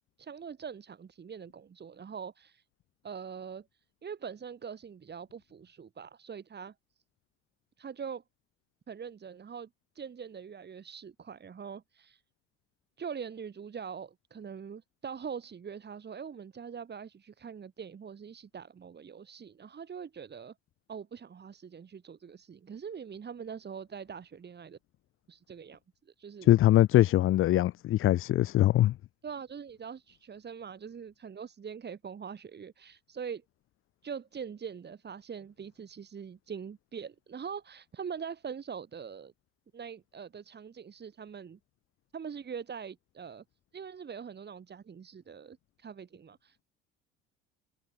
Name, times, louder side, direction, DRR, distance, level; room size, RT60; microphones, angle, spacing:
voice 1, 0.2-2.6 3.0-3.7 4.0-6.7 7.8-8.2 8.9-9.7 9.9-12.2 13.0-20.5 20.9-24.8 25.3-25.8 26.1-26.5 29.2-33.4 34.0-39.3 39.7-41.6 42.1-43.4 43.7-46.6, right 7 dB, 35° right, 6.8 m, -43 dB
voice 2, 26.5-28.9, left 14 dB, 45° left, 0.7 m, -22 dB
hypercardioid pair, 70°, 29 cm